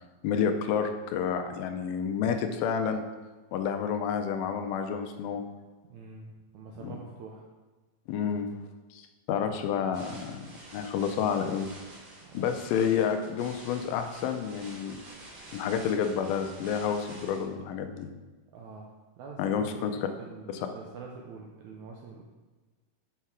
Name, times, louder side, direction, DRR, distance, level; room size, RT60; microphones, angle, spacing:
voice 1, 0.2-3.1 3.5-5.4 6.8-7.0 8.1-8.6 8.9-10.5 10.7-11.7 12.3-15.0 15.5-18.1 19.4-19.9 20.5-20.7, left 7 dB, 90° left, 7 dB, 2.5 m, -29 dB
voice 2, 5.9-7.4 12.2-12.5 18.5-19.9 20.2-22.2, right 4 dB, 80° right, 0 dB, 1.7 m, -45 dB
sound 1, 9.9-17.4, right 1 dB, 60° right, 4.1 m, -48 dB
6.7 x 5.7 x 4.7 m, 1.3 s
omnidirectional pair, 4.1 m